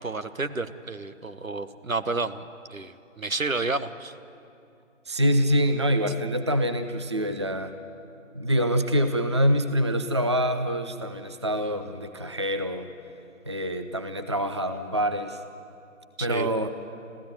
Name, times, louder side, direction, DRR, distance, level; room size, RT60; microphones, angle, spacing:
voice 1, 0.0-4.1 16.2-16.5, right 3 dB, 85° right, 11 dB, 1.3 m, -31 dB
voice 2, 5.1-7.7 8.3-12.9 13.5-15.4 16.2-16.7, equal, 20° right, 8 dB, 0.4 m, -25 dB
26.0 x 15.5 x 9.8 m, 2.6 s
figure-of-eight pair, 145°, 40 cm